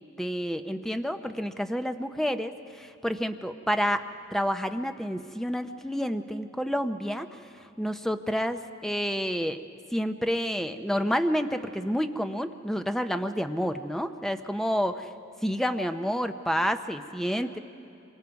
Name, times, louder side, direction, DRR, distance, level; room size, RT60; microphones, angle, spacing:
voice 1, 0.2-7.3 7.8-9.6 9.9-15.1 15.4-17.6, equal, ahead, 8 dB, 0.6 m, -29 dB
26.5 x 23.5 x 4.7 m, 2.6 s
head